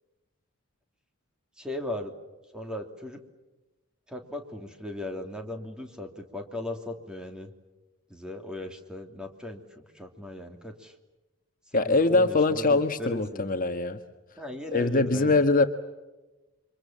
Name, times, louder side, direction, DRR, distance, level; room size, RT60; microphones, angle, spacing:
voice 1, 1.6-2.1 2.5-3.2 4.1-7.5 8.1-10.9 11.7-13.5 14.4-15.4, left 1 dB, 5° right, 4 dB, 3.0 m, -38 dB
voice 2, 11.7-14.0 14.7-15.7, left 3 dB, 40° left, 7 dB, 1.4 m, -23 dB
29.0 x 25.5 x 7.5 m, 1.1 s
head